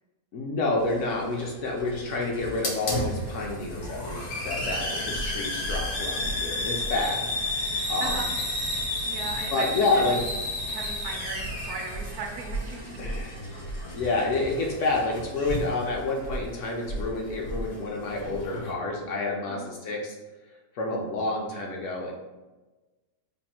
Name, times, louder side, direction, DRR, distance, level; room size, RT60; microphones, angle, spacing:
voice 1, 0.3-7.2 7.9-8.2 9.5-10.2 13.0-13.5 13.9-20.2 20.7-22.1, left 2 dB, 65° left, -1 dB, 0.8 m, -29 dB
Hiss, 0.8-18.7, left 1 dB, 80° left, 1.4 m, -32 dB
voice 2, 7.7-8.3 9.1-9.7 9.9-10.2 10.7-13.1 19.5-19.7, right 4 dB, 70° right, 0 dB, 0.7 m, -38 dB
3.3 x 2.3 x 4.2 m, 1.2 s
omnidirectional pair, 1.6 m